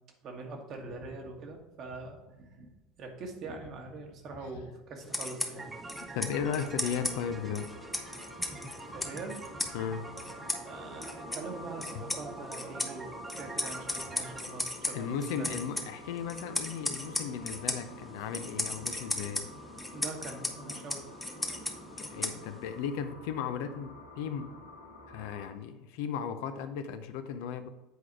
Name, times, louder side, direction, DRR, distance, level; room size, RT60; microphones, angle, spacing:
voice 1, 0.2-2.7 3.0-5.7 8.4-8.5 8.9-9.7 10.6-13.1 13.4-15.6 19.9-21.0, right 3 dB, 50° right, 1.5 m, -43 dB
sound 1, 5.0-22.8, left 2 dB, 10° left, 1.1 m, -38 dB
sound 2, 5.5-14.4, right 3 dB, 20° right, 0.8 m, -46 dB
voice 2, 6.0-7.7 9.7-10.1 12.0-12.1 14.9-19.5 22.0-24.5 25.1-27.7, left 7 dB, 65° left, 0.6 m, -36 dB
sound 3, 6.3-25.5, left 2 dB, 85° left, 1.5 m, -50 dB
8.1 x 4.9 x 4.6 m
figure-of-eight pair, 70°, 0 cm